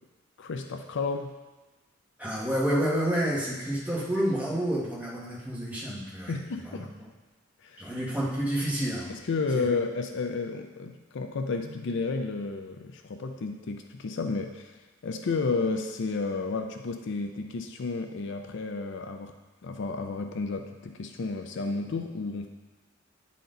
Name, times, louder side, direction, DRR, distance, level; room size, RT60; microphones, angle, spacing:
voice 1, 0.4-1.3 6.3-6.9 7.6-7.9 9.1-14.7 15.0-19.3 19.6-22.5, left 4 dB, 65° left, 6 dB, 0.5 m, -32 dB
voice 2, 2.2-6.4 6.6-6.8 7.8-9.1 9.5-9.8, right 1 dB, 10° right, -7 dB, 1.6 m, -29 dB
9.3 x 4.3 x 3.9 m, 1.2 s
head